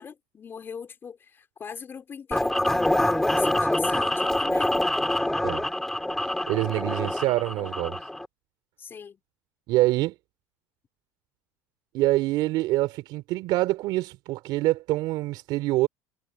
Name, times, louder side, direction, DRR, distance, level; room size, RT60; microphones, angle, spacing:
voice 1, 0.0-4.9 8.8-9.2, left 6 dB, 30° left, 4.6 m, -40 dB
sound 1, 2.3-8.3, left 1 dB, 5° left, 3.5 m, -25 dB
voice 2, 6.5-8.0 9.7-10.1 11.9-15.9, right 18 dB, 60° right, 3.7 m, -25 dB
supercardioid pair, 120°, 8 cm